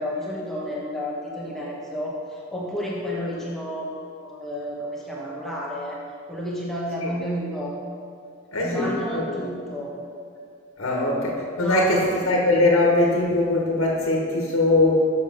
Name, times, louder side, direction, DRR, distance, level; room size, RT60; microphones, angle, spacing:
voice 1, 0.0-2.2 2.5-3.9 4.2-6.0 6.3-7.8 8.6-10.0 11.6-12.0, equal, ahead, -5 dB, 1.1 m, -31 dB
voice 2, 8.5-9.5 10.8-15.0, left 2 dB, 80° left, -2 dB, 1.3 m, -21 dB
7.2 x 6.6 x 5.5 m, 2.3 s
head